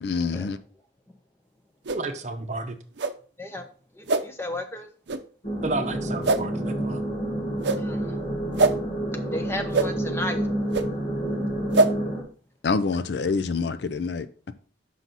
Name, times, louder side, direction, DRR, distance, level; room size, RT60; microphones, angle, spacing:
voice 1, 0.0-0.6 12.6-14.3, left 4 dB, 65° left, 0.5 m, -26 dB
sound 1, 1.8-2.0 3.0-3.1 4.1-4.2 5.1-5.2 6.2-6.4 7.6-7.8 8.6-8.7 9.7-9.9 10.7-10.8 11.7-11.9, right 3 dB, 70° right, 0.6 m, -21 dB
voice 2, 1.9-2.8 5.6-7.0, right 3 dB, 40° right, 0.8 m, -31 dB
voice 3, 4.0-4.9 7.7-8.2 9.3-10.5, left 1 dB, 15° left, 0.8 m, -34 dB
sound 2, 5.4-12.2, right 1 dB, 40° left, 1.9 m, -29 dB
6.1 x 5.7 x 4.0 m
head